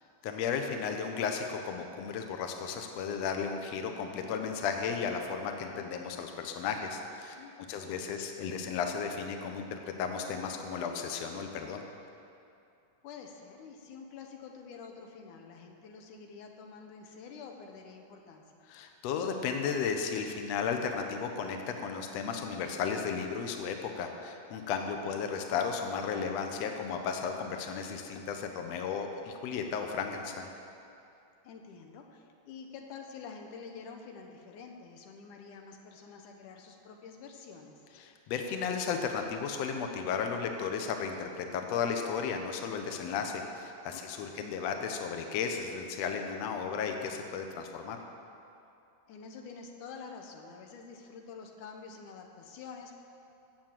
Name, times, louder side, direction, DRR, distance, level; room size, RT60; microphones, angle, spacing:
voice 1, 0.2-7.4 7.7-11.8 18.7-30.5 38.0-48.0, left 6 dB, 90° left, 4 dB, 1.4 m, -34 dB
voice 2, 7.4-8.0 13.0-18.4 24.7-25.3 31.4-37.8 43.9-44.5 49.1-52.9, left 5 dB, 65° left, 3 dB, 2.3 m, -48 dB
16.5 x 7.4 x 7.6 m, 2.6 s
omnidirectional pair, 4.4 m